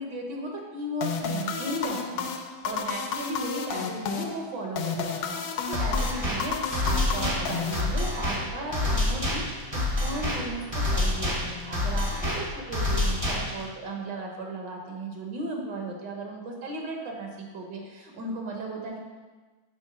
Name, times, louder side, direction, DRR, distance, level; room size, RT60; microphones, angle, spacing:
voice 1, 0.0-2.3 2.6-19.0, right 2 dB, 60° right, 1 dB, 1.6 m, -36 dB
sound 1, 1.0-8.4, left 5 dB, 80° left, 1.5 m, -32 dB
sound 2, 5.7-13.7, left 1 dB, 20° right, 0.8 m, -28 dB
6.1 x 4.4 x 5.9 m, 1.3 s
omnidirectional pair, 2.3 m